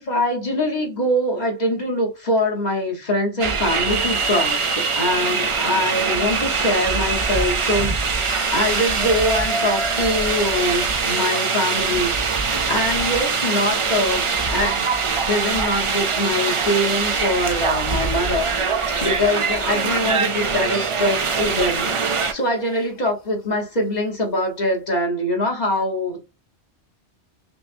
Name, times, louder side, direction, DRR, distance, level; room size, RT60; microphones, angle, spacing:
voice 1, 0.0-14.9 15.3-26.2, left 1 dB, 40° left, 1.3 m, -23 dB
sound 1, 3.4-22.3, right 5 dB, 45° right, 0.4 m, -23 dB
sound 2, 8.2-24.8, left 2 dB, 85° left, 2.1 m, -41 dB
5.9 x 2.4 x 2.6 m
omnidirectional pair, 1.2 m